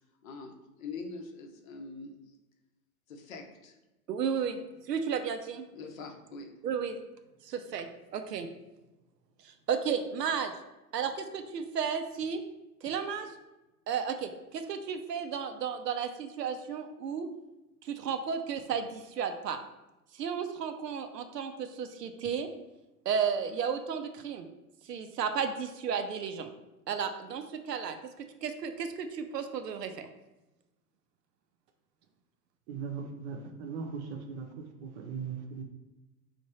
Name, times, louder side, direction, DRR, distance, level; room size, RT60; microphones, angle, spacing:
voice 1, 0.2-2.2 3.1-3.8 5.7-6.5, left 4 dB, 55° left, 4 dB, 0.7 m, -43 dB
voice 2, 4.1-4.6 4.9-5.7 6.6-7.0 7.4-8.5 9.4-10.5 10.9-12.4 12.8-13.3 13.9-17.3 17.8-19.6 20.1-22.5 23.1-24.4 24.9-26.5 26.9-28.0 28.4-30.1, right 7 dB, 80° right, 8 dB, 0.5 m, -33 dB
voice 3, 32.7-35.6, right 5 dB, 45° right, 3 dB, 0.7 m, -39 dB
3.2 x 2.5 x 4.2 m, 1.0 s
figure-of-eight pair, 95°, 48 cm